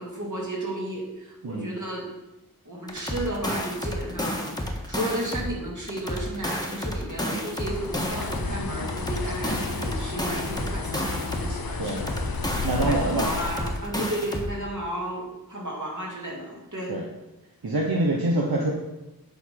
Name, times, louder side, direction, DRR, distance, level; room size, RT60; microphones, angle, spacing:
voice 1, 0.0-2.1 2.6-12.1 12.4-16.9, right 1 dB, 55° right, -4 dB, 2.8 m, -33 dB
sound 1, 2.9-5.5 5.9-8.5 8.9-11.5 11.9-14.5, equal, 10° left, 1.4 m, -31 dB
Bird, 7.6-13.9, left 4 dB, 75° left, 0.7 m, -33 dB
voice 2, 12.6-13.3 16.9-17.0 17.6-18.7, right 2 dB, 85° right, -1 dB, 1.0 m, -25 dB
9.2 x 3.8 x 5.9 m, 0.99 s
wide cardioid pair, 45°, 36 cm